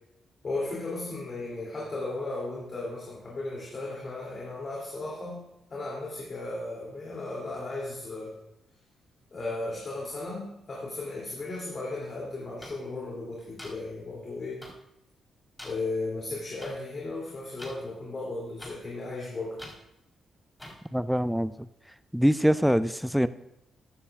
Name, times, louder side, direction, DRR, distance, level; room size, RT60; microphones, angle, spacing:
voice 1, 0.4-8.4 9.3-14.7 15.6-19.6, left 2 dB, 45° left, -4 dB, 2.8 m, -35 dB
sound 1, 12.6-12.7 13.6-13.7 14.6-14.7 15.6-15.7 16.6-16.7 17.6-17.7 18.6-18.7 19.6-19.7 20.6-20.7, left 1 dB, 15° left, 4.0 m, -42 dB
voice 2, 20.9-21.5 22.1-23.3, equal, ahead, 14 dB, 0.5 m, -23 dB
15.0 x 9.6 x 2.4 m, 0.83 s
hypercardioid pair, 45°, 0 cm